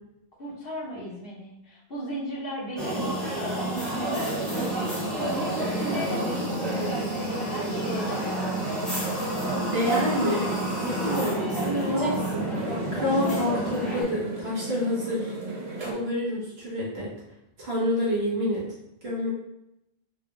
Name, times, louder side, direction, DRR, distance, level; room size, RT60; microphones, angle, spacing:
voice 1, 0.4-4.8 5.2-8.5, right 1 dB, 65° left, -5 dB, 1.3 m, -36 dB
sound 1, 2.8-14.0, right 1 dB, ahead, 1.0 m, -29 dB
sound 2, 4.5-15.9, right 3 dB, 40° right, 0.7 m, -36 dB
voice 2, 9.7-10.5 10.8-12.5 12.9-15.3 15.8-17.1 17.6-18.7 19.0-19.3, left 1 dB, 75° right, -7 dB, 1.6 m, -28 dB
4.1 x 2.3 x 3.0 m, 0.83 s
omnidirectional pair, 1.0 m